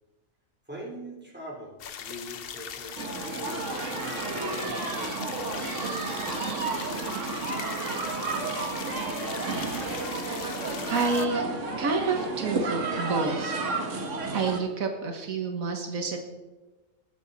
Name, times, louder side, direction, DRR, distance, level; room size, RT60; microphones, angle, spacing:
voice 1, 0.7-7.3, equal, 5° right, -3 dB, 3.2 m, -44 dB
sound 1, 1.8-11.3, left 8 dB, 55° left, 0.7 m, -40 dB
sound 2, 3.0-14.6, right 3 dB, 60° right, 1.6 m, -31 dB
voice 2, 10.1-11.4 11.8-13.6 14.3-16.2, right 4 dB, 75° right, 4 dB, 1.6 m, -29 dB
sound 3, 10.2-15.2, left 3 dB, 80° left, 3.2 m, -52 dB
19.5 x 7.3 x 4.0 m, 1.1 s
omnidirectional pair, 1.4 m